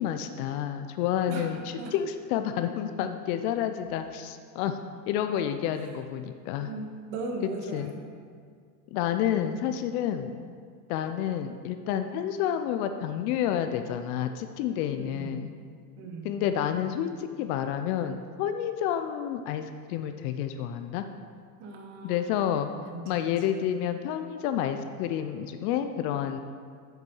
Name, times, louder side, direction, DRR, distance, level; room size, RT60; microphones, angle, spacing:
voice 1, 0.0-1.6 1.9-4.8 5.1-6.7 7.7-7.9 8.9-10.3 10.9-15.5 16.2-21.0 22.0-22.7 23.1-26.4, left 10 dB, 65° left, 8 dB, 0.6 m, -29 dB
voice 2, 1.3-1.9 5.7-5.9 6.6-8.0 15.0-15.4 16.0-16.3 21.6-23.4, right 2 dB, 60° right, 2 dB, 1.6 m, -39 dB
7.6 x 5.4 x 5.5 m, 2.1 s
supercardioid pair, 130°, 48 cm